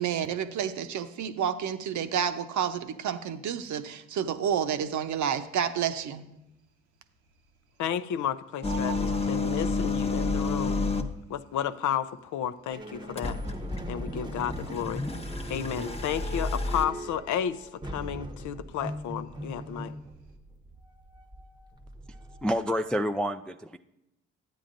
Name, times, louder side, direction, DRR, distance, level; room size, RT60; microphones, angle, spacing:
voice 1, 0.0-6.3, right 8 dB, 60° right, 9 dB, 0.8 m, -30 dB
Bird, 6.0-6.3 6.6-6.7 6.9-8.1 8.4-10.2 11.1-11.2 11.8-11.9 12.1-12.2 12.9-13.3 14.3-14.4 14.7-14.8 15.1-17.4 17.7-18.0 18.3-19.7 20.0-20.3, right 5 dB, 90° right, 1.0 m, -46 dB
voice 2, 7.8-10.8 11.3-13.4 13.9-15.0 15.5-19.9, left 9 dB, 60° left, 12 dB, 0.6 m, -32 dB
sound 1, 8.6-11.2 13.2-16.8, left 3 dB, 20° left, 0.8 m, -30 dB
sound 2, 12.7-22.8, right 1 dB, 15° right, 0.9 m, -41 dB
voice 3, 22.4-23.8, equal, 5° left, 8 dB, 0.3 m, -28 dB
12.5 x 8.8 x 2.6 m, 0.88 s
hypercardioid pair, 55°, 34 cm